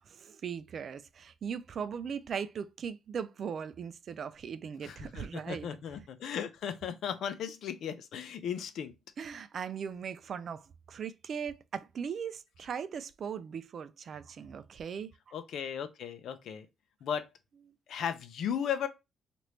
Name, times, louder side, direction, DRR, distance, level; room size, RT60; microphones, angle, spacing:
voice 1, 0.1-5.7 9.2-15.3, right 7 dB, 55° right, 0.4 m, -39 dB
voice 2, 4.8-8.9 15.3-16.7 17.0-17.3 17.9-18.9, left 8 dB, 70° left, 0.5 m, -36 dB
3.0 x 2.5 x 3.2 m
cardioid pair, 90°, 0 cm